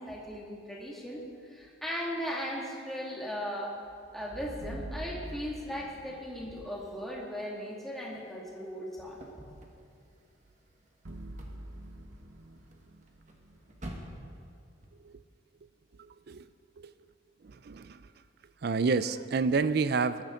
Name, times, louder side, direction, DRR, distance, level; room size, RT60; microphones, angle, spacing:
voice 1, 0.0-3.8 4.1-9.2, equal, ahead, -4 dB, 2.3 m, -37 dB
sound 1, 4.6-6.8 11.0-14.3, right 1 dB, 75° right, 1.0 m, -45 dB
sound 2, 9.0-14.9, right 1 dB, 35° right, 1.6 m, -50 dB
voice 2, 16.0-16.5 16.8-16.9 17.4-18.1 18.6-20.2, right 4 dB, 50° right, 13 dB, 0.4 m, -29 dB
20.0 x 13.5 x 3.9 m, 2.4 s
head